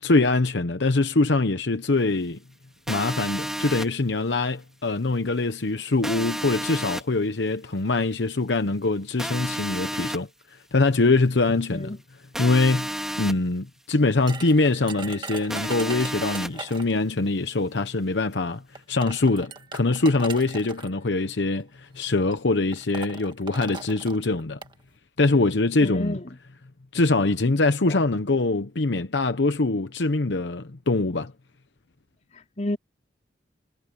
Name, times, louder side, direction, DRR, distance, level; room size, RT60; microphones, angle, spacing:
voice 1, 0.0-2.4 2.9-10.3 10.7-11.9 12.4-18.6 18.9-24.6 25.2-26.2 26.9-31.3, left 3 dB, 80° left, 0.9 m, -23 dB
sound 1, 2.9-3.9 6.0-7.0 9.2-10.2 12.3-13.3 15.5-16.5, equal, 5° right, 4.6 m, -31 dB
sound 2, 14.3-17.0 18.1-18.2 18.8-20.9 21.8-22.0 22.3-22.4 22.7-24.7, right 4 dB, 25° right, 1.9 m, -39 dB
voice 2, 25.8-26.3 27.9-28.0 32.3-32.8, left 1 dB, 40° left, 4.4 m, -31 dB
head